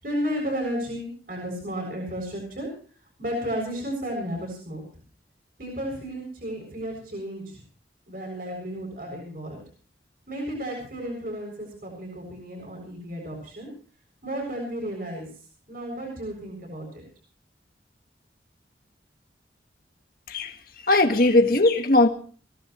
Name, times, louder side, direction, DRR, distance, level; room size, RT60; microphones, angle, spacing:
voice 1, 0.0-2.7 3.2-4.8 5.6-7.6 8.1-9.6 10.3-13.7 14.2-15.3 15.7-17.0, equal, 50° right, 0 dB, 7.3 m, -33 dB
voice 2, 20.8-22.1, left 2 dB, 55° left, 5 dB, 1.7 m, -19 dB
24.0 x 16.5 x 3.2 m, 0.42 s
head